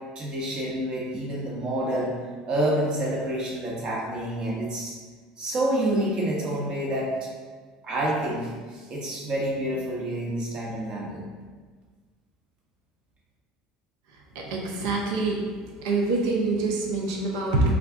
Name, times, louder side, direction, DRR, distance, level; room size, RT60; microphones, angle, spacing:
voice 1, 0.1-2.2 2.5-5.0 5.4-7.3 7.8-11.3, right 1 dB, 40° right, -3 dB, 1.0 m, -28 dB
voice 2, 14.3-15.5 15.8-17.7, right 3 dB, 85° right, -1 dB, 0.6 m, -25 dB
3.5 x 2.3 x 3.6 m, 1.5 s
supercardioid pair, 110°, 2 cm